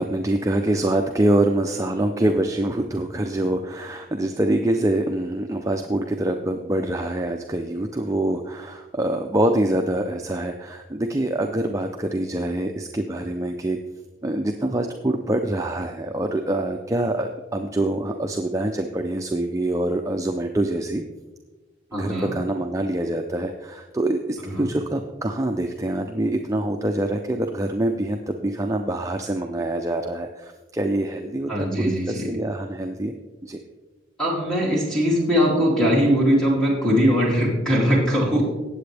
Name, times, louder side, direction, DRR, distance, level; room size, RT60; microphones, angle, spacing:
voice 1, 0.0-13.8 14.2-21.0 21.9-33.2 33.4-33.6, right 1 dB, 15° right, 3 dB, 0.5 m, -25 dB
voice 2, 21.9-22.3 24.5-24.6 31.5-32.3 34.2-38.4, equal, 5° left, -5 dB, 2.7 m, -21 dB
18.0 x 7.8 x 3.4 m, 1.2 s
head